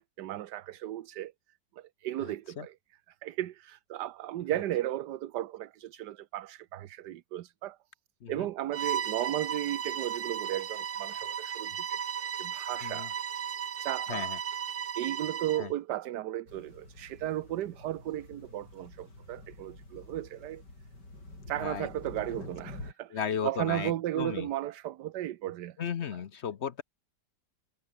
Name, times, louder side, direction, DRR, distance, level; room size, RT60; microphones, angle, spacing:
voice 1, 0.0-1.3 1.8-2.7 3.2-7.8 8.3-12.0 12.4-13.1 13.8-14.3 15.0-20.6 21.5-25.8, right 13 dB, 75° right, 1.4 m, -35 dB
Bowed string instrument, 8.7-15.7, right 8 dB, 50° right, 0.7 m, -35 dB
sound 1, 16.5-22.9, left 2 dB, 75° left, 8.4 m, -48 dB
voice 2, 21.6-21.9 23.1-24.5 25.8-26.8, left 7 dB, 50° left, 0.9 m, -35 dB
omnidirectional pair, 1.9 m